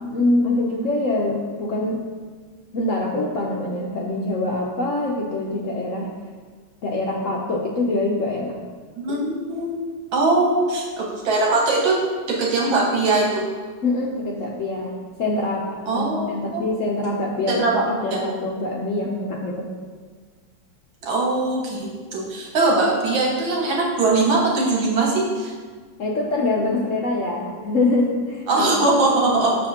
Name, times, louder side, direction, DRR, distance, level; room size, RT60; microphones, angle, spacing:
voice 1, 0.0-2.0 2.7-6.1 6.8-8.6 13.8-19.7 26.0-28.7 29.1-29.2, left 2 dB, 80° left, -2 dB, 0.7 m, -24 dB
voice 2, 9.0-9.8 10.1-12.0 12.3-13.4 15.9-16.6 17.5-17.8 18.1-18.2 21.0-25.5 28.5-29.5, right 3 dB, 80° right, -3 dB, 2.0 m, -21 dB
7.3 x 6.4 x 2.8 m, 1.5 s
omnidirectional pair, 2.1 m